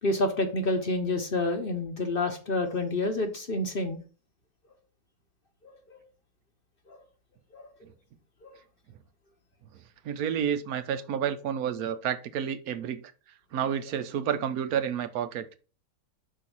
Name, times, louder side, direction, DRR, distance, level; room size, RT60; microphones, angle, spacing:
voice 1, 0.0-4.0 5.6-6.0 6.9-7.0 7.5-7.7 8.4-8.5 13.5-13.6, left 2 dB, 45° left, 0.9 m, -29 dB
voice 2, 10.0-13.0 13.5-15.5, right 8 dB, 80° right, 1.1 m, -30 dB
5.7 x 4.1 x 6.1 m
omnidirectional pair, 1.6 m